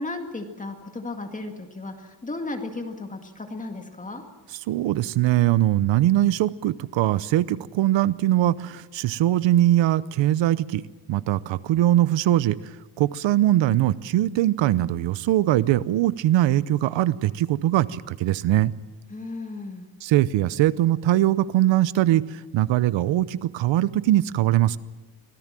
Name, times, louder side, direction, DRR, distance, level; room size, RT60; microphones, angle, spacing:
voice 1, 0.0-4.2 19.1-19.9, left 2 dB, 15° left, 4 dB, 2.0 m, -34 dB
voice 2, 4.7-10.8 11.1-12.6 13.0-18.7 20.0-24.8, right 14 dB, 85° right, 17 dB, 0.8 m, -21 dB
24.5 x 17.0 x 7.6 m, 1.2 s
cardioid pair, 155°, 44 cm